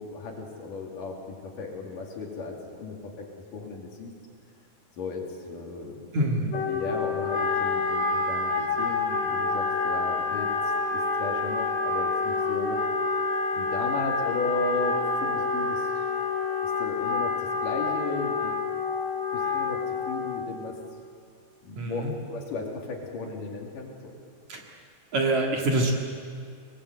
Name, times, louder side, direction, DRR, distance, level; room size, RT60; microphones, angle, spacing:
voice 1, 0.0-4.1 5.0-6.1 6.5-10.5 10.9-12.8 13.5-15.9 16.6-18.5 19.3-20.8 21.6-24.2, left 3 dB, 60° left, 0 dB, 4.1 m, -35 dB
voice 2, 6.1-6.5 21.8-22.1 24.5-24.6 25.1-25.9, right 2 dB, 55° right, 1 dB, 3.0 m, -25 dB
Wind instrument woodwind instrument, 6.5-20.6, left 4 dB, 80° left, 4.7 m, -28 dB
25.5 x 20.0 x 8.1 m, 2.2 s
omnidirectional pair, 4.4 m